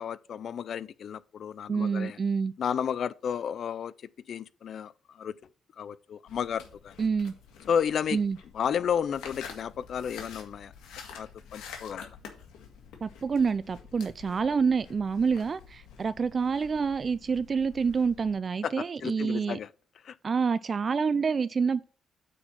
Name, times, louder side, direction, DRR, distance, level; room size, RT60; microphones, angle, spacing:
voice 1, 0.0-2.2 2.6-3.9 4.3-5.3 5.8-6.9 7.7-8.2 8.5-10.7 11.1-12.1 18.6-18.7 19.0-19.7 20.0-20.1, left 8 dB, 60° left, 0.4 m, -32 dB
voice 2, 1.7-2.5 7.0-7.3 8.1-8.4 13.0-19.6 20.2-21.8, right 5 dB, 40° right, 0.3 m, -27 dB
sound 1, 6.3-18.4, left 6 dB, 85° left, 1.8 m, -48 dB
8.9 x 4.3 x 5.7 m
cardioid pair, 90°, 0 cm